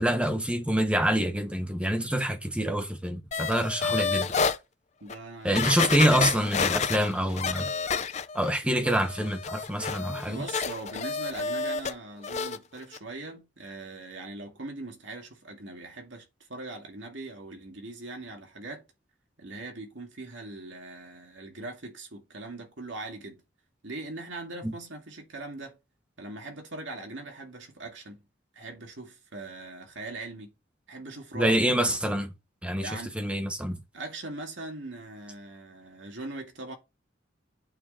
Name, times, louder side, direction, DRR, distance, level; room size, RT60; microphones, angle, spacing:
voice 1, 0.0-4.3 5.4-7.7 8.3-10.4 24.6-24.7 31.3-32.3 32.6-32.9 33.1-33.8, right 1 dB, 5° right, 1.1 m, -26 dB
sound 1, 3.3-4.6 5.1-5.2 5.5-8.5 8.8-11.9 12.2-12.6 12.9-13.0, left 5 dB, 35° left, 0.5 m, -30 dB
voice 2, 5.0-6.3 10.3-18.8 19.4-23.4 23.8-25.8 26.2-28.3 28.5-30.5 30.9-31.6 32.8-33.2 33.9-36.8, right 2 dB, 75° right, 2.2 m, -41 dB
8.8 x 4.7 x 4.4 m
head